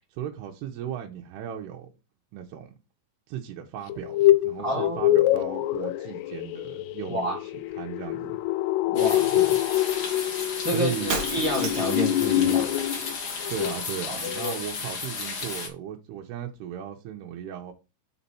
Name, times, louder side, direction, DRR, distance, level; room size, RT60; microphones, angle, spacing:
voice 1, 0.1-1.9 2.3-2.8 3.3-8.4 9.3-9.6 10.7-11.2 13.5-17.7, right 9 dB, 85° right, 2.8 m, -36 dB
sound 1, 3.9-13.1 13.4-13.8 14.0-14.1, left 14 dB, 90° left, 2.7 m, -25 dB
voice 2, 4.6-5.1 7.1-7.4 8.9-9.3 10.6-12.7 14.1-14.6, equal, 10° right, 1.8 m, -29 dB
sound 2, 8.9-15.7, left 4 dB, 55° left, 1.3 m, -34 dB
Shatter, 11.1-12.1, right 4 dB, 65° right, 1.8 m, -32 dB
6.2 x 4.1 x 5.7 m
omnidirectional pair, 4.7 m